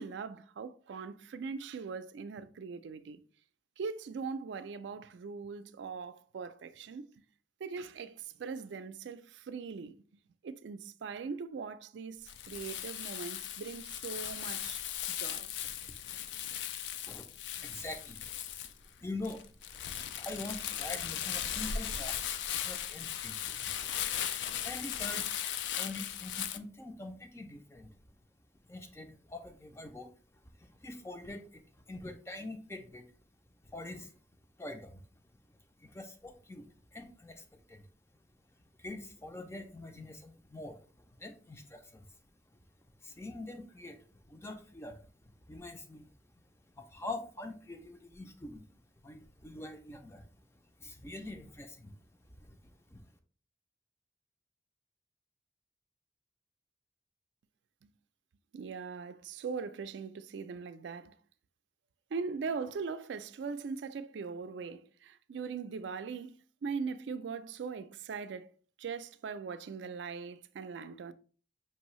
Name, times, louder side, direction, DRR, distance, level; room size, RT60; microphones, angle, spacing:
voice 1, 0.0-3.2 3.8-7.1 7.6-10.0 10.4-14.8 15.1-15.5 57.8-57.9 58.5-61.1 62.1-68.5 68.8-71.1, right 5 dB, 85° right, 0.4 m, -40 dB
Crumpling crinkling, 12.3-26.6, left 10 dB, 80° left, 0.3 m, -38 dB
voice 2, 17.6-18.2 19.0-19.5 20.2-22.2 22.5-23.7 24.6-25.3 25.8-28.0 28.7-30.1 30.6-33.1 33.6-34.1 34.6-35.0 35.8-37.9 38.8-42.1 43.0-45.0 45.5-46.1 46.8-48.6 49.0-50.3 50.8-51.9 52.4-53.0, left 2 dB, 15° left, 0.4 m, -44 dB
5.5 x 2.6 x 3.0 m
head